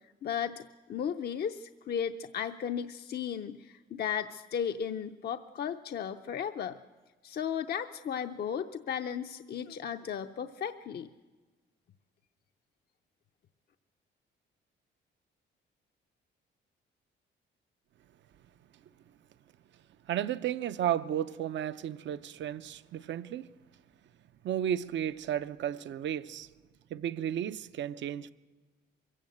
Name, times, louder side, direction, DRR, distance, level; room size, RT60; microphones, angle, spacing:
voice 1, 0.2-0.6 0.9-6.8 7.2-11.1, left 8 dB, 55° left, 0.7 m, -35 dB
voice 2, 20.1-23.5 24.4-26.5 26.9-28.3, right 10 dB, 65° right, 0.7 m, -33 dB
23.0 x 16.0 x 7.9 m
cardioid pair, 90°, 20 cm